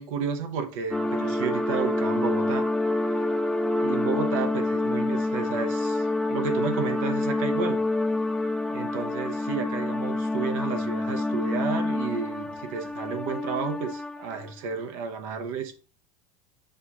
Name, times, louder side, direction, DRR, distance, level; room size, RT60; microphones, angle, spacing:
voice 1, 0.0-2.7 3.8-7.8 8.7-15.8, right 6 dB, 70° right, 0.8 m, -32 dB
sound 1, 0.9-14.5, left 2 dB, 5° left, 0.4 m, -27 dB
6.3 x 2.9 x 2.4 m
supercardioid pair, 115°, 18 cm